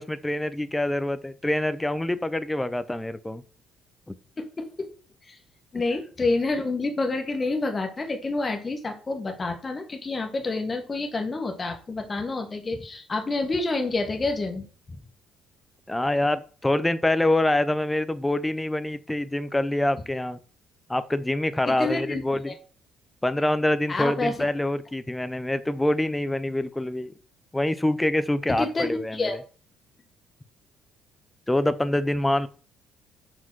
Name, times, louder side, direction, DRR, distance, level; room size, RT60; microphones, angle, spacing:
voice 1, 0.0-3.4 4.1-4.2 15.9-20.4 20.9-22.5 23.2-27.1 27.5-29.3 31.5-32.5, left 1 dB, 10° left, 14 dB, 0.6 m, -25 dB
voice 2, 4.4-4.9 5.3-5.4 5.7-15.0 21.7-22.6 23.9-24.4 28.6-29.4, left 3 dB, 25° left, 4 dB, 1.6 m, -28 dB
5.8 x 5.0 x 6.2 m, 0.38 s
cardioid pair, 120°, 0 cm